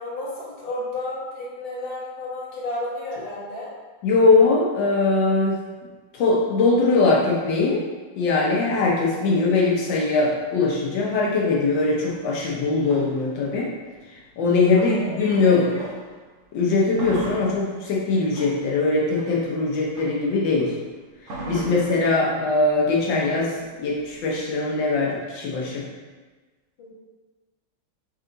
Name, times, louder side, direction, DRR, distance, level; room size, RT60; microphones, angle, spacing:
voice 1, 0.0-3.7 14.5-15.9 21.5-21.7 26.8-26.9, left 1 dB, 35° left, -7 dB, 1.1 m, -33 dB
voice 2, 4.0-5.6 6.1-7.8 8.2-13.7 14.4-15.8 16.5-20.7 21.5-23.5 23.8-25.8, left 3 dB, 75° left, -3 dB, 1.4 m, -21 dB
sound 1, 12.1-16.2 16.6-24.5, right 2 dB, 50° right, 1.1 m, -39 dB
3.7 x 3.4 x 3.8 m, 1.3 s
omnidirectional pair, 2.0 m